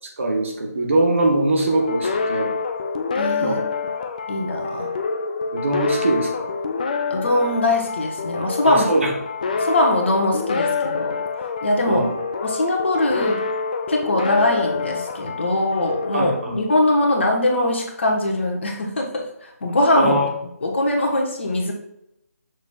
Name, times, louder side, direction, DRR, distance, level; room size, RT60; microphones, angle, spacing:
voice 1, 0.0-2.5 3.4-3.6 5.5-6.5 8.6-9.1 11.9-12.1 16.1-16.6 19.9-20.3, right 1 dB, 50° right, 1 dB, 1.3 m, -22 dB
sound 1, 1.7-17.1, left 4 dB, 30° left, 0.5 m, -27 dB
voice 2, 3.1-3.6 4.3-4.9 7.1-8.9 9.6-11.2 11.6-12.1 12.4-13.4 13.9-20.1 20.6-21.7, left 1 dB, 45° left, 1 dB, 1.3 m, -21 dB
7.0 x 6.3 x 2.4 m, 0.80 s
figure-of-eight pair, 150°, 9 cm